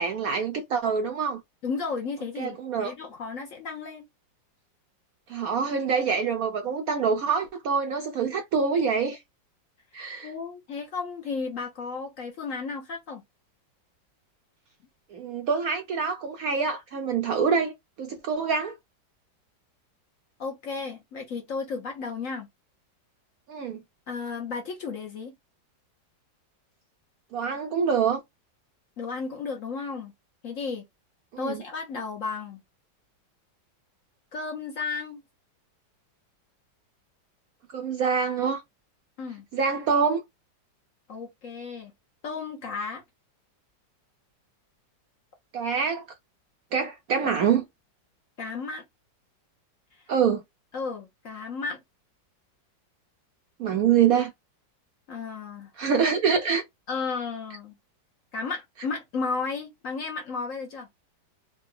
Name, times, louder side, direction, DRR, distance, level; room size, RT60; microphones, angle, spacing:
voice 1, 0.0-1.4 2.4-2.9 5.3-9.2 9.9-10.3 15.1-18.7 23.5-23.8 27.3-28.2 31.3-31.6 37.7-38.6 39.5-40.2 45.5-46.0 46.7-47.6 50.1-50.4 53.6-54.3 55.8-56.6, right 6 dB, 70° right, 0.9 m, -25 dB
voice 2, 1.6-4.0 10.2-13.2 20.4-22.5 24.1-25.3 29.0-30.1 30.4-30.8 31.4-32.6 34.3-35.2 39.2-39.4 41.1-41.9 42.2-43.0 48.4-48.8 50.7-51.8 55.1-55.7 56.9-57.7 58.3-60.9, left 4 dB, 55° left, 1.0 m, -33 dB
3.8 x 2.2 x 3.6 m
omnidirectional pair, 2.0 m